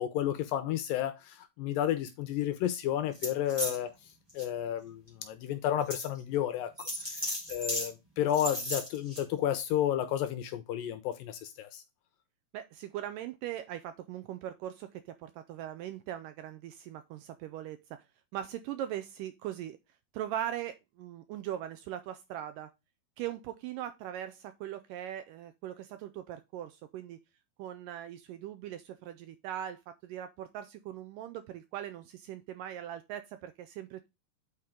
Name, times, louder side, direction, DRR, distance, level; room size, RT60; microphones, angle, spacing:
voice 1, 0.0-3.9 4.3-11.8, left 11 dB, 80° left, 2.2 m, -32 dB
sound 1, 3.1-3.8 4.3-4.4 5.1-5.2 5.9-6.1 6.8-7.9 8.3-9.2, equal, 10° right, 1.9 m, -35 dB
voice 2, 12.5-18.0 18.3-19.8 20.1-22.7 23.2-27.2 27.6-34.1, right 11 dB, 85° right, 2.0 m, -40 dB
8.3 x 4.4 x 3.6 m
omnidirectional pair, 4.3 m